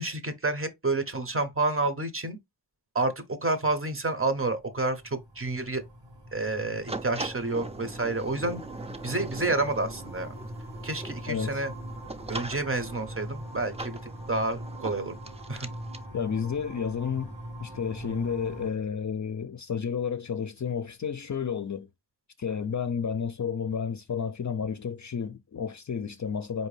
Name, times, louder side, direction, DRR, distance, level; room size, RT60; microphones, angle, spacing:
voice 1, 0.0-2.4 2.9-5.8 6.3-8.6 9.0-10.3 10.8-11.7 12.3-14.0 14.3-15.2 15.5-15.7, right 2 dB, 30° right, 0.8 m, -29 dB
sound 1, 4.3-18.7, equal, 85° right, 1.3 m, -42 dB
sound 2, 6.9-16.1, right 3 dB, 15° right, 0.4 m, -42 dB
voice 2, 11.3-11.7 16.1-17.3 17.6-21.9 22.4-26.7, left 7 dB, 45° left, 0.4 m, -31 dB
4.4 x 2.7 x 3.2 m
wide cardioid pair, 80°, 42 cm